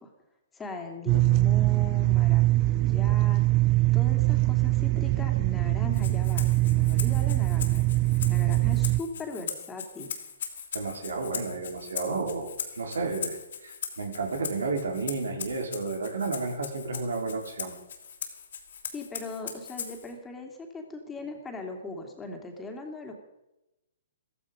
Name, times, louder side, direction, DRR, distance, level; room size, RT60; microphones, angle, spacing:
voice 1, 0.5-3.4 3.9-7.8 8.3-10.1 18.9-23.1, left 2 dB, 15° left, 3 dB, 2.9 m, -39 dB
sound 1, 1.1-9.0, right 18 dB, 35° right, 0.6 m, -23 dB
Rattle (instrument), 5.9-20.1, left 7 dB, 70° left, 3.1 m, -39 dB
voice 2, 10.7-17.7, right 3 dB, 80° right, 2 dB, 4.3 m, -32 dB
15.0 x 15.0 x 5.2 m, 0.93 s
hypercardioid pair, 130°, 0 cm